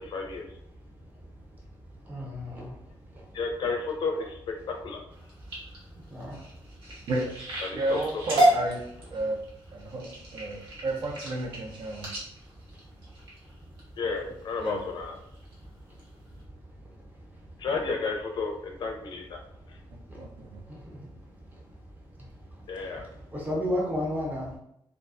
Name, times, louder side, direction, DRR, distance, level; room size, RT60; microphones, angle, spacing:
voice 1, 0.0-0.4 3.3-4.4 4.8-5.0 7.6-8.0 8.4-8.5 14.0-15.2 17.6-19.4 22.7-23.1, left 4 dB, 60° left, 2 dB, 0.4 m, -32 dB
voice 2, 2.1-2.7 6.1-6.4 23.3-24.5, left 1 dB, 20° right, -3 dB, 0.7 m, -31 dB
sound 1, 5.1-13.8 14.4-14.7 15.2-15.5 16.0-16.1 16.4-16.5, right 1 dB, 90° right, 1.0 m, -31 dB
voice 3, 7.7-8.8 9.1-9.4 9.7-12.2 14.6-14.9 19.9-20.6, right 2 dB, 60° right, 1 dB, 0.5 m, -32 dB
2.3 x 2.2 x 2.4 m, 0.74 s
wide cardioid pair, 155°, 9 cm